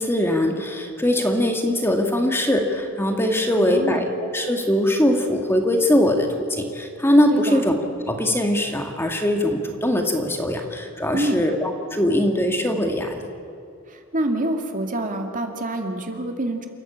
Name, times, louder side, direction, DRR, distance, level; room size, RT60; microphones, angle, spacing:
voice 1, 0.0-7.8 8.1-13.3, left 1 dB, 10° left, 3 dB, 1.9 m, -21 dB
voice 2, 3.6-4.0 7.3-7.6 11.1-11.4 13.9-16.7, right 1 dB, 35° right, 4 dB, 2.2 m, -26 dB
29.0 x 14.5 x 8.6 m, 2.6 s
head